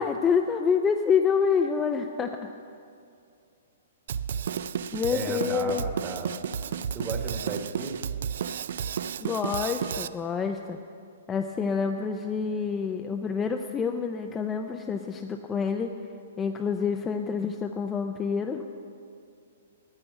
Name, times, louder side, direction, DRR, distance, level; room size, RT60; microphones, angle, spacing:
voice 1, 0.0-2.5 4.9-5.8 9.2-10.8 11.3-16.0 16.4-18.6, left 6 dB, 15° left, 4 dB, 0.4 m, -27 dB
Drum kit, 4.1-10.1, right 8 dB, 65° right, 0.3 m, -32 dB
voice 2, 5.1-6.4 6.9-8.1, right 3 dB, 20° right, 3 dB, 1.3 m, -34 dB
9.1 x 8.9 x 8.1 m, 2.5 s
hypercardioid pair, 155°, 0 cm